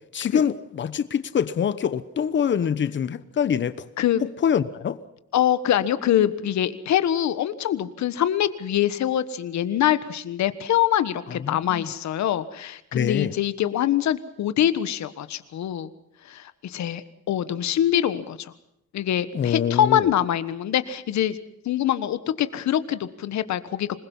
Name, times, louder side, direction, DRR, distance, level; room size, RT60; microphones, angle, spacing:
voice 1, 0.1-3.7 4.4-5.0 11.3-11.9 12.9-13.3 19.3-20.1, left 8 dB, 40° left, 1.1 m, -25 dB
voice 2, 5.3-15.9 16.3-17.0 17.3-18.5 18.9-21.4 21.6-24.0, left 11 dB, 70° left, 1.4 m, -24 dB
27.0 x 21.0 x 5.6 m
cardioid pair, 165°, 29 cm